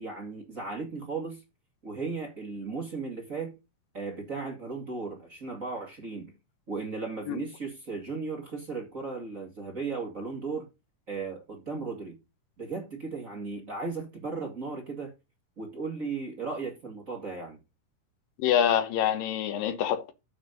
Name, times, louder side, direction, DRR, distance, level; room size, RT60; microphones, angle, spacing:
voice 1, 0.0-1.4 1.8-3.6 3.9-6.3 6.7-10.7 11.1-12.2 12.6-15.1 15.6-17.6, right 4 dB, 25° right, 2.1 m, -36 dB
voice 2, 18.4-20.1, left 9 dB, 85° left, 2.7 m, -26 dB
8.6 x 6.7 x 5.2 m
omnidirectional pair, 3.9 m